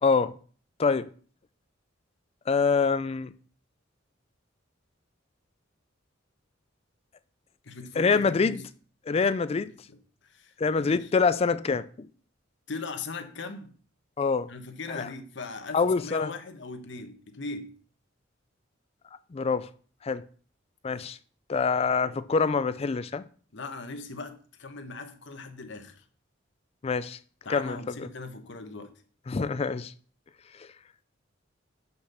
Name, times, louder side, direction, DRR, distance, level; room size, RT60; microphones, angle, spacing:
voice 1, 0.0-0.3 0.8-1.1 2.5-3.3 8.0-8.6 9.1-9.7 10.6-12.1 14.2-14.5 14.9-15.1 15.7-16.3 19.3-19.7 20.0-20.2 20.8-21.2 21.5-23.2 26.8-27.2 27.5-28.1 29.3-29.9 30.6-30.7, left 5 dB, 30° left, 0.4 m, -25 dB
voice 2, 7.6-8.7 9.1-9.2 9.9-10.0 10.2-11.1 12.7-13.7 14.5-17.7 20.9-21.1 23.5-26.0 27.4-28.9, left 3 dB, 65° left, 1.1 m, -39 dB
5.8 x 5.8 x 6.6 m
head